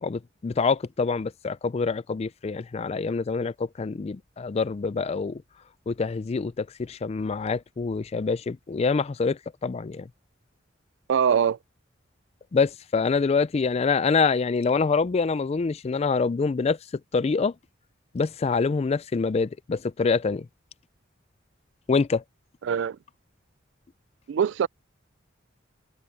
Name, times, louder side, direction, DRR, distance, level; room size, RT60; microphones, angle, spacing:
voice 1, 0.0-5.4 5.9-10.1 12.5-16.8 17.1-17.5 18.1-20.5 21.9-22.2, left 4 dB, 35° left, 0.4 m, -25 dB
voice 2, 11.1-11.6 22.7-23.0 24.3-24.7, right 7 dB, 65° right, 0.3 m, -22 dB
head